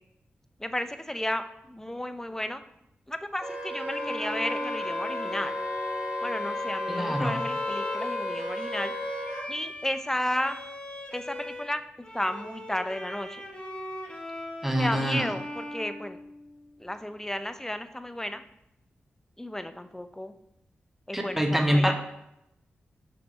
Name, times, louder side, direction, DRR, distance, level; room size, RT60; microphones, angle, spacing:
voice 1, 0.6-2.6 3.1-5.5 6.2-8.9 9.5-10.6 11.1-11.8 12.1-13.4 14.7-16.2 16.8-18.4 19.4-20.3 21.1-21.9, left 1 dB, 10° left, 10 dB, 0.6 m, -33 dB
Wind instrument woodwind instrument, 3.4-9.4, left 1 dB, 30° right, 2.0 m, -33 dB
Bowed string instrument, 3.9-11.7 12.0-16.8, left 1 dB, 25° left, 1.3 m, -40 dB
voice 2, 6.9-7.4 14.6-15.3 21.1-21.9, equal, 5° right, 3 dB, 1.2 m, -25 dB
5.7 x 3.4 x 5.4 m, 0.82 s
cardioid pair, 40°, 4 cm